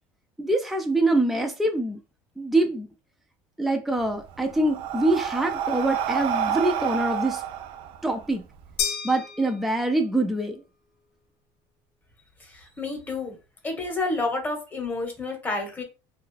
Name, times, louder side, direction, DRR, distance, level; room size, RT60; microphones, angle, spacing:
voice 1, 0.4-2.0 2.4-2.9 3.6-7.4 8.0-8.4 9.0-10.6, right 2 dB, ahead, 0.4 m, -24 dB
Breathing, 4.0-8.7, right 9 dB, 60° right, 0.4 m, -29 dB
sound 1, 8.8-10.2, left 8 dB, 70° left, 0.8 m, -32 dB
voice 2, 12.5-13.4 13.6-15.8, left 3 dB, 15° left, 1.0 m, -29 dB
2.7 x 2.3 x 3.2 m
cardioid pair, 125°, 10 cm